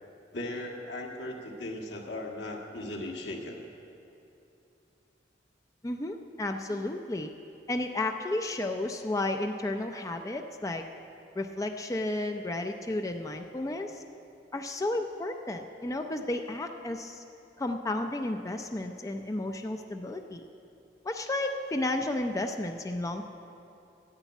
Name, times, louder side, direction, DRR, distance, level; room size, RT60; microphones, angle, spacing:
voice 1, 0.3-3.6 6.7-6.8, left 1 dB, 80° left, 0 dB, 1.7 m, -38 dB
voice 2, 5.8-7.3 7.7-10.8 11.3-14.0 14.5-17.2 17.6-20.5 21.0-23.3, left 2 dB, 20° left, 5 dB, 0.5 m, -32 dB
11.5 x 8.1 x 9.1 m, 2.8 s
head